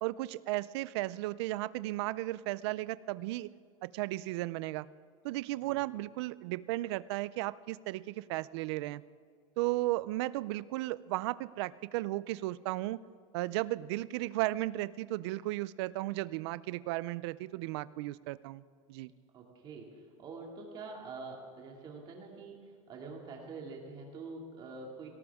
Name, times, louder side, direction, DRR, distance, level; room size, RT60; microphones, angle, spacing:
voice 1, 0.0-3.5 3.8-4.9 5.2-9.0 9.6-13.0 13.3-18.6 18.9-19.1, right 18 dB, 50° right, 18 dB, 0.4 m, -35 dB
voice 2, 19.3-25.1, right 3 dB, 25° right, 0 dB, 2.4 m, -46 dB
18.0 x 18.0 x 3.6 m, 2.2 s
supercardioid pair, 170°, 19 cm